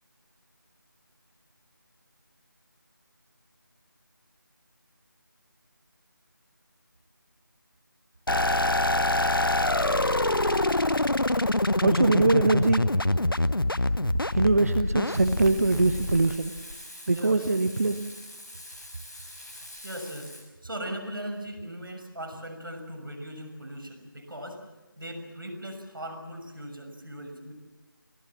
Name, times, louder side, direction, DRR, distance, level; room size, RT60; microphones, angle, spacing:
sound 1, 8.3-16.7, left 1 dB, 85° left, 0.9 m, -25 dB
voice 1, 11.8-12.9 14.3-16.5 17.1-18.0, right 3 dB, 40° right, 8 dB, 1.0 m, -23 dB
Frying (food), 15.1-20.4, left 1 dB, 5° left, 1.4 m, -44 dB
voice 2, 17.1-17.4 19.8-20.3 20.6-24.7 25.0-27.5, equal, 75° right, 5 dB, 6.4 m, -39 dB
27.5 x 16.5 x 7.4 m, 1.2 s
figure-of-eight pair, 165°, 12 cm